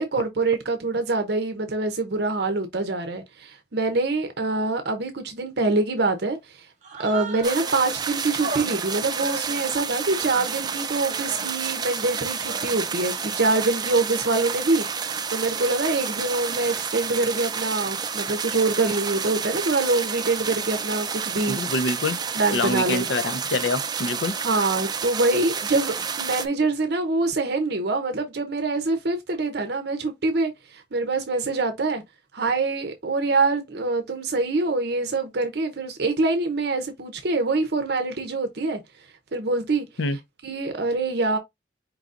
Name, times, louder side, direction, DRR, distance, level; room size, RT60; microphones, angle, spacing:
voice 1, 0.0-6.7 7.0-14.9 15.3-21.6 22.3-23.1 24.4-32.0 32.3-38.8 39.3-39.8 40.4-41.4, right 3 dB, 60° right, 0.7 m, -25 dB
Human voice, 6.8-8.0 8.4-10.7 11.1-11.7 12.3-13.0, right 4 dB, 40° right, 1.3 m, -37 dB
sound 1, 7.4-26.5, right 6 dB, 25° right, 0.5 m, -30 dB
voice 2, 21.5-22.2 22.5-24.3 40.0-40.2, left 3 dB, 85° left, 0.6 m, -25 dB
4.7 x 3.9 x 2.5 m
head